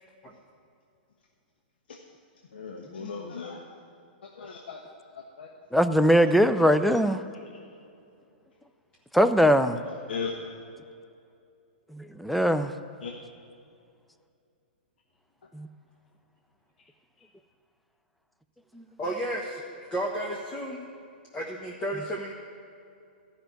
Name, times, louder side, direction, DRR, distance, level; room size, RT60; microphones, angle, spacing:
voice 1, 2.5-3.6 4.4-4.8 5.1-5.5 9.9-10.3 13.0-13.1 17.2-17.3, left 5 dB, 75° left, 0 dB, 1.1 m, -37 dB
voice 2, 5.7-7.2 9.1-9.8 11.9-12.7 15.5-15.7 18.7-18.8, equal, ahead, 10 dB, 0.4 m, -21 dB
voice 3, 19.0-20.8 21.3-22.3, right 1 dB, 20° left, -2 dB, 1.3 m, -32 dB
12.5 x 5.8 x 9.2 m, 2.5 s
hypercardioid pair, 120°, 5 cm